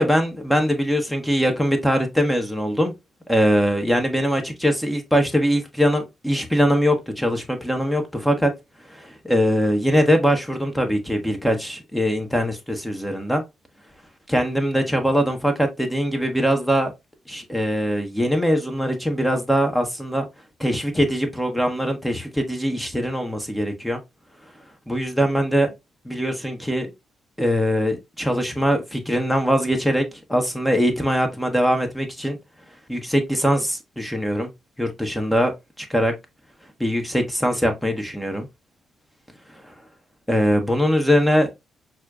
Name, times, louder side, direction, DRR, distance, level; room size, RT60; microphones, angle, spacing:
voice 1, 0.0-2.9 3.3-8.5 8.9-13.4 14.3-16.9 17.3-20.3 20.6-24.0 24.9-25.7 26.0-26.9 27.4-32.4 32.9-34.5 34.8-35.5 35.8-36.1 36.8-38.5 39.5-39.7 40.3-41.5, equal, 5° left, 1.0 m, -22 dB
6.1 x 2.5 x 2.3 m
hypercardioid pair, 50°, 0 cm